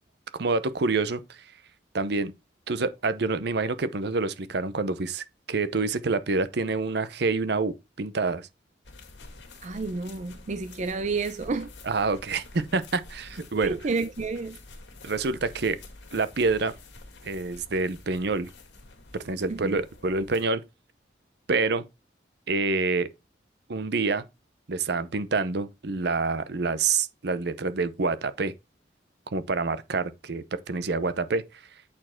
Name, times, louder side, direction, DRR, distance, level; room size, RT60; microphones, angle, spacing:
voice 1, 0.3-1.4 1.9-2.3 2.7-8.5 11.9-13.8 15.0-15.8 16.1-16.7 17.2-18.5 19.2-20.6 21.5-21.8 22.5-23.1 23.7-24.2 24.7-28.5 29.3-31.4, right 3 dB, 65° right, 0.7 m, -27 dB
sound 1, 8.8-20.4, left 2 dB, 90° left, 2.0 m, -48 dB
voice 2, 9.6-11.7 13.5-14.6 19.5-19.8, right 4 dB, 40° right, 0.5 m, -30 dB
8.6 x 4.5 x 4.4 m
head